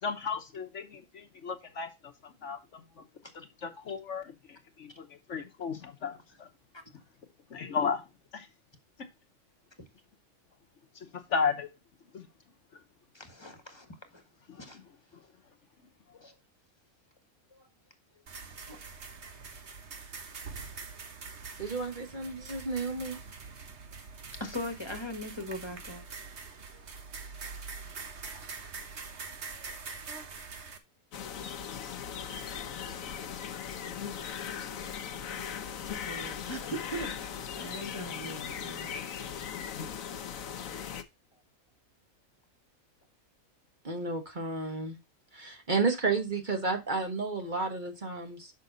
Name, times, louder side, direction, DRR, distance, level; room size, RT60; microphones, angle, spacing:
voice 1, 0.0-3.1 3.3-6.5 7.5-8.1 8.3-8.5 9.0-9.1 10.9-11.7 12.1-12.3 14.5-14.8 15.1-15.2, left 5 dB, 60° left, 1.3 m, -35 dB
voice 2, 13.1-13.9 14.1-14.2 14.6-14.8 16.2-16.3 17.5-17.7 18.7-18.8 24.4-26.0 36.1-37.3 37.6-38.9, equal, 20° left, 1.4 m, -40 dB
sound 1, 18.3-30.8, right 4 dB, 55° right, 1.5 m, -44 dB
voice 3, 21.6-23.2 43.8-45.0 45.3-48.5, right 4 dB, 35° right, 1.4 m, -32 dB
sound 2, 31.1-41.0, left 8 dB, 75° left, 1.3 m, -38 dB
6.8 x 5.9 x 3.9 m
omnidirectional pair, 1.4 m